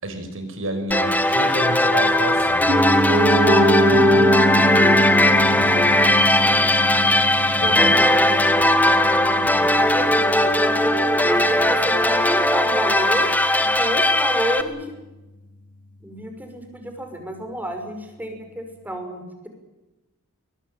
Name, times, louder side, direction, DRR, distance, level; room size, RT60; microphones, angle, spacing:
voice 1, 0.0-2.6 7.6-7.9, right 1 dB, 60° right, 7 dB, 5.9 m, -30 dB
sound 1, 0.9-14.6, left 1 dB, 10° left, 1.5 m, -18 dB
Piano, 2.7-12.7 13.0-13.1, equal, 40° right, 4.2 m, -23 dB
voice 2, 7.6-8.5 9.3-13.3 13.6-15.0 16.0-19.5, equal, 10° right, 5 dB, 5.7 m, -30 dB
22.5 x 19.5 x 9.1 m, 1.1 s
head